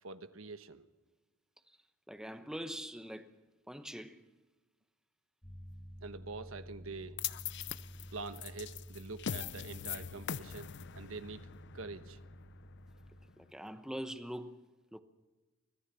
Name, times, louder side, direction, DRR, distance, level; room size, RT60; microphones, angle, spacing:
voice 1, 0.0-0.8 6.0-7.2 8.1-11.5 11.7-12.2, right 3 dB, 90° right, 1.2 m, -45 dB
voice 2, 2.1-3.3 3.7-4.3 13.4-15.0, equal, 5° right, 1.0 m, -43 dB
sound 1, 5.4-13.3, equal, 15° left, 2.8 m, -51 dB
sound 2, 7.2-13.5, left 9 dB, 60° left, 0.6 m, -42 dB
24.5 x 17.0 x 7.0 m
head